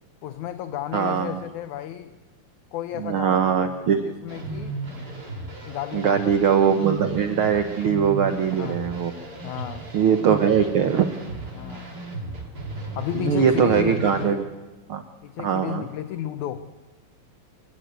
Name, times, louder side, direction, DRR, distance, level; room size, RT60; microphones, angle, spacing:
voice 1, 0.2-2.2 2.7-4.8 5.7-6.3 8.6-8.9 9.4-9.9 11.5-11.9 12.9-14.5 15.2-16.6, left 11 dB, 70° left, 10 dB, 2.0 m, -33 dB
voice 2, 0.9-1.4 3.0-4.0 5.9-9.1 9.9-11.1 13.1-14.4 14.9-15.0 15.4-15.9, right 7 dB, 85° right, 8 dB, 1.1 m, -21 dB
sound 1, 4.3-14.3, right 2 dB, 25° right, 3.5 m, -35 dB
28.0 x 17.0 x 8.2 m, 1.2 s
omnidirectional pair, 4.0 m